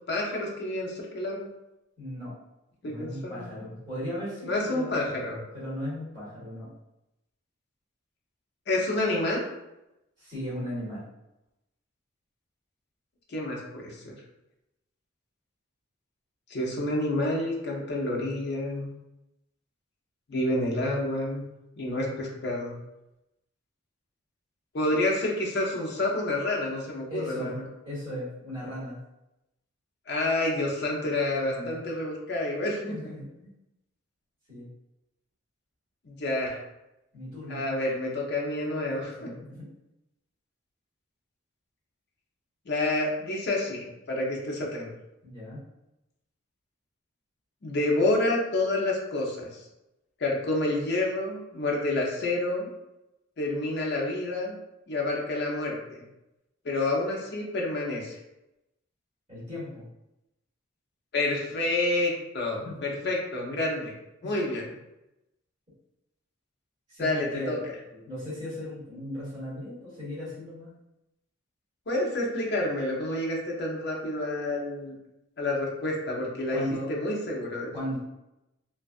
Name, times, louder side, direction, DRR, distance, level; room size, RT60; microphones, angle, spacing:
voice 1, 0.1-1.5 2.8-3.6 4.5-5.4 8.7-9.5 13.3-14.1 16.5-18.9 20.3-21.4 21.8-22.8 24.7-27.6 30.1-32.9 36.0-36.6 37.5-39.3 42.7-44.9 47.6-49.5 50.2-52.7 53.4-54.6 54.9-56.0 56.6-58.2 61.1-63.9 64.2-64.6 67.0-67.6 71.9-74.9 75.4-76.6 76.9-77.7, left 2 dB, 50° left, -2 dB, 0.5 m, -29 dB
voice 2, 2.0-2.3 2.8-5.3 5.5-6.7 10.2-11.0 27.1-29.0 31.3-31.8 32.9-33.5 34.5-34.7 37.1-37.7 39.2-39.7 45.2-45.6 59.3-59.9 62.6-63.1 64.2-64.3 66.9-70.8 76.5-76.9 77.7-78.0, left 1 dB, 35° right, -13 dB, 1.4 m, -37 dB
2.5 x 2.3 x 2.3 m, 0.92 s
head